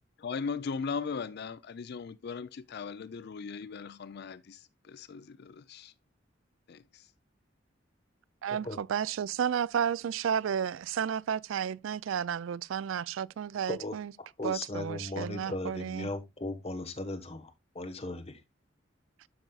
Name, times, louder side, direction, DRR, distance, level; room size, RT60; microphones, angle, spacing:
voice 1, 0.2-5.9 6.7-7.1, left 5 dB, 55° left, 0.4 m, -38 dB
voice 2, 8.4-14.1 14.4-16.1, right 8 dB, 85° right, 0.3 m, -32 dB
voice 3, 14.4-18.4, left 2 dB, 30° left, 1.2 m, -37 dB
12.0 x 5.3 x 2.3 m
head